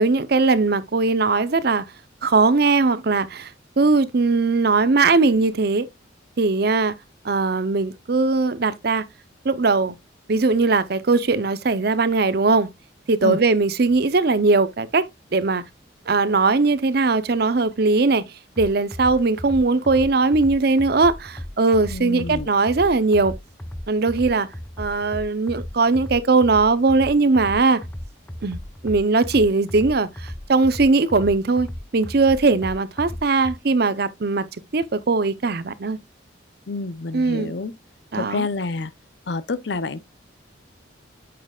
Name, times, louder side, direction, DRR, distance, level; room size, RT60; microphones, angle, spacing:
voice 1, 0.0-1.9 2.2-5.9 6.4-6.9 7.2-9.1 9.4-9.9 10.3-12.7 13.1-15.6 16.1-18.2 18.6-23.4 23.9-24.5 24.8-27.8 28.4-28.6 28.8-31.7 31.9-34.5 34.7-36.0 37.1-37.5 38.1-38.4, right 3 dB, 55° right, 0.6 m, -19 dB
sound 1, 18.6-33.6, equal, 10° left, 0.6 m, -36 dB
voice 2, 21.9-22.5 36.7-37.7 38.2-38.9 39.3-40.0, left 3 dB, 60° left, 0.6 m, -28 dB
8.5 x 6.5 x 2.3 m
head